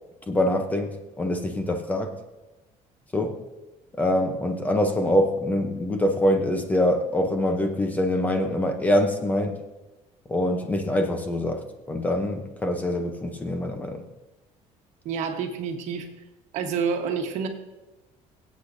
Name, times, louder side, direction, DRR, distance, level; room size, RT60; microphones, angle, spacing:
voice 1, 0.3-2.1 3.1-3.4 4.0-9.6 10.3-14.0, left 1 dB, 10° left, 5 dB, 0.7 m, -24 dB
voice 2, 15.0-16.1 16.5-17.5, right 6 dB, 65° right, 4 dB, 1.3 m, -28 dB
22.5 x 8.3 x 2.7 m, 1.1 s
cardioid pair, 180°, 13 cm